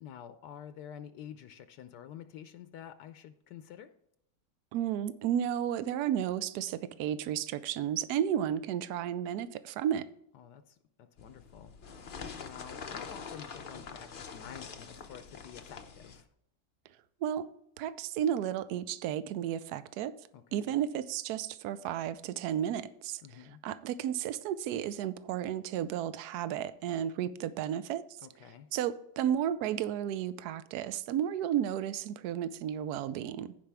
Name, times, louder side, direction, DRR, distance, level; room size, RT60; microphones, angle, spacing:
voice 1, 0.0-3.9 10.3-16.3 20.3-20.7 23.2-23.6 28.2-28.7, left 9 dB, 75° left, 1.2 m, -49 dB
voice 2, 4.7-10.1 17.2-17.5 17.8-20.2 20.5-23.2 23.6-28.1 28.7-33.5, right 10 dB, 70° right, 1.1 m, -33 dB
sound 1, 11.2-16.2, left 5 dB, 50° left, 0.6 m, -45 dB
15.0 x 5.3 x 3.4 m
omnidirectional pair, 1.9 m